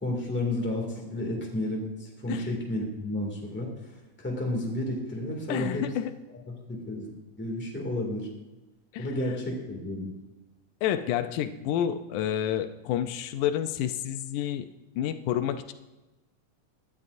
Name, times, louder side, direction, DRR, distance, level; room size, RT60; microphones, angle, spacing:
voice 1, 0.0-3.7 4.2-5.9 6.5-7.1 7.4-8.3 9.0-10.1, left 1 dB, 5° left, -1 dB, 1.8 m, -31 dB
voice 2, 5.5-6.1 8.9-9.1 10.8-14.7 15.0-15.7, left 10 dB, 85° left, 9 dB, 2.2 m, -29 dB
17.5 x 11.0 x 2.6 m, 1.1 s
omnidirectional pair, 3.6 m